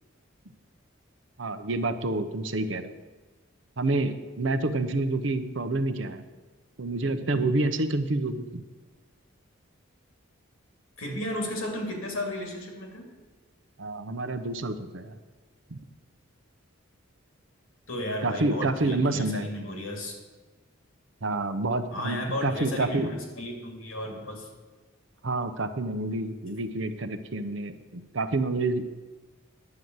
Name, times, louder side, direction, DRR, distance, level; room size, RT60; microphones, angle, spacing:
voice 1, 1.4-2.9 3.8-6.2 6.8-8.6 13.8-15.2 15.7-15.8 18.2-19.5 21.2-23.1 25.2-28.8, right 2 dB, 60° right, 9 dB, 0.8 m, -28 dB
voice 2, 11.0-13.1 17.9-20.1 21.9-24.5, left 1 dB, 85° left, 2 dB, 2.6 m, -34 dB
10.5 x 5.7 x 7.9 m, 1.3 s
head